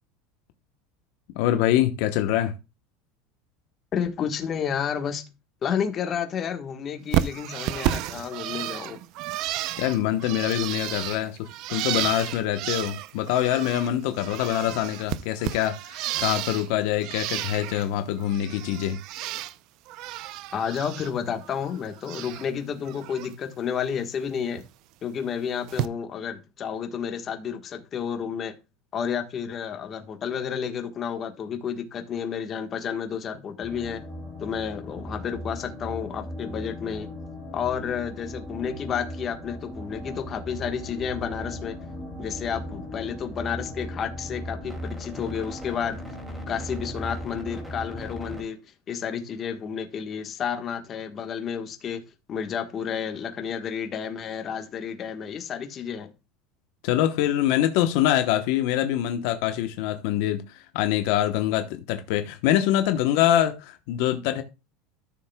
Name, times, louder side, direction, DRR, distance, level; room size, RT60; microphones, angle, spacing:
voice 1, 1.4-2.5 9.8-19.0 56.8-64.4, left 12 dB, 65° left, 1.0 m, -24 dB
voice 2, 3.9-5.2 5.6-9.0 20.5-24.6 25.0-28.5 28.9-34.0 34.4-37.1 37.5-41.8 42.2-46.0 46.5-48.6 48.9-52.0 52.3-56.1, left 7 dB, 30° left, 1.3 m, -31 dB
Bird, 7.1-13.9 14.2-16.7 17.0-17.9 18.2-19.5 19.9-21.1 21.4-22.5 22.9-23.3 24.6-24.7 25.7-25.9, right 13 dB, 55° right, 0.5 m, -32 dB
sound 1, 33.6-48.4, left 1 dB, 5° right, 2.4 m, -37 dB
13.5 x 6.6 x 2.3 m
supercardioid pair, 140°, 0 cm